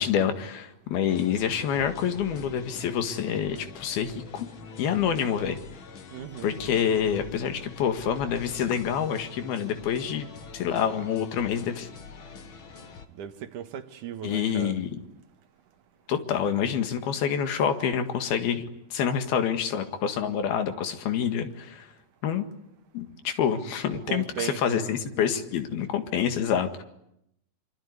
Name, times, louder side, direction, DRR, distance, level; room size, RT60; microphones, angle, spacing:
voice 1, 0.0-4.5 4.8-5.6 6.4-10.3 10.5-11.9 14.2-15.0 16.1-18.6 18.9-21.9 22.2-22.5 22.9-26.8, left 8 dB, 80° left, 3.8 m, -27 dB
sound 1, 1.1-13.1, left 5 dB, 45° left, 1.7 m, -45 dB
voice 2, 6.1-6.6 13.2-14.8 23.9-25.0, right 9 dB, 65° right, 2.7 m, -36 dB
25.0 x 24.5 x 9.6 m
omnidirectional pair, 4.3 m